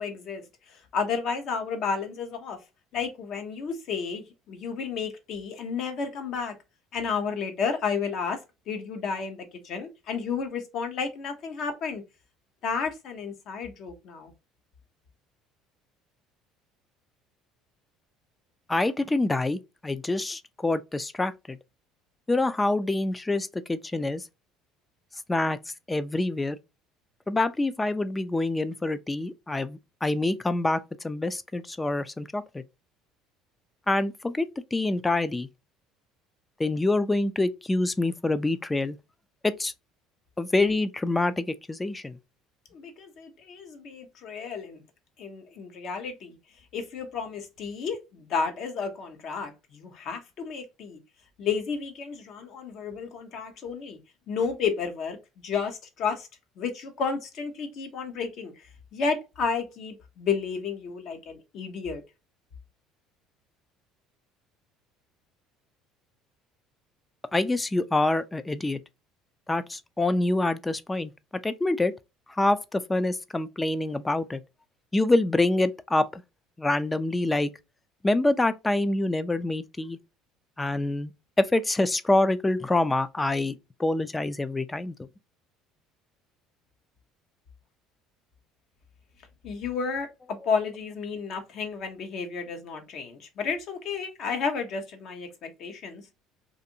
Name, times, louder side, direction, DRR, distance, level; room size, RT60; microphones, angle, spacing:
voice 1, 0.0-2.6 2.9-6.5 6.9-8.4 8.7-12.0 12.6-14.3 42.7-44.8 45.2-46.4 46.7-51.0 51.4-54.0 54.3-55.2 55.4-56.3 56.6-62.0 89.4-96.1, left 5 dB, 55° left, 0.8 m, -32 dB
voice 2, 18.7-21.6 22.3-24.2 25.3-25.6 25.9-26.6 27.3-32.6 33.9-35.5 36.6-39.0 39.4-39.7 40.4-42.2 67.3-68.8 69.5-71.1 71.4-71.9 72.3-74.4 74.9-76.2 76.6-77.5 78.0-80.0 80.6-81.1 81.4-85.1, left 2 dB, 15° left, 0.3 m, -26 dB
2.6 x 2.5 x 2.7 m
supercardioid pair, 105°, 0 cm